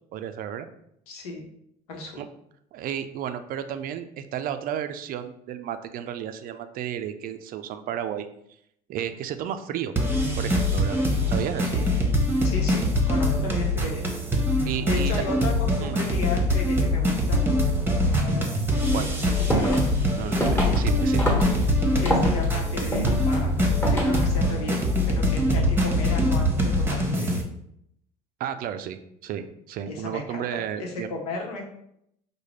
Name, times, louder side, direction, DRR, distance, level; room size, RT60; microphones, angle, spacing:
voice 1, 0.1-0.7 2.2-2.3 2.7-8.3 8.9-9.9 10.4-11.0 11.3-11.7 14.6-15.2 15.8-16.0 18.9-19.1 20.2-21.3 28.4-29.4 29.7-31.1, right 9 dB, 50° right, 9 dB, 0.4 m, -32 dB
voice 2, 1.1-1.4 1.9-2.2 11.7-12.1 12.4-14.0 14.8-17.4 19.1-19.9 21.9-27.3 29.9-31.6, left 3 dB, 80° left, 1 dB, 0.9 m, -34 dB
sound 1, 10.0-27.4, left 1 dB, 10° right, 1.0 m, -23 dB
sound 2, 19.3-24.5, left 1 dB, 10° left, 1.3 m, -28 dB
4.8 x 2.2 x 3.1 m, 0.74 s
hypercardioid pair, 65°, 19 cm